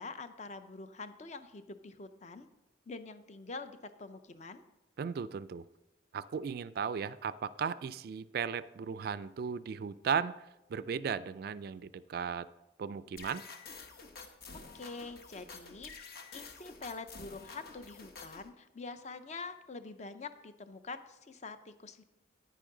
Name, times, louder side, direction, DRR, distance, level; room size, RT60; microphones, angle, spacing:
voice 1, 0.0-2.5 2.9-4.6 14.7-22.0, left 3 dB, 35° left, 10 dB, 0.6 m, -45 dB
voice 2, 5.0-5.6 6.1-10.3 10.7-12.5 12.8-13.4, right 6 dB, 55° right, 16 dB, 0.3 m, -36 dB
sound 1, 13.2-18.5, left 4 dB, 55° left, 1.0 m, -49 dB
10.0 x 9.3 x 3.8 m, 0.96 s
head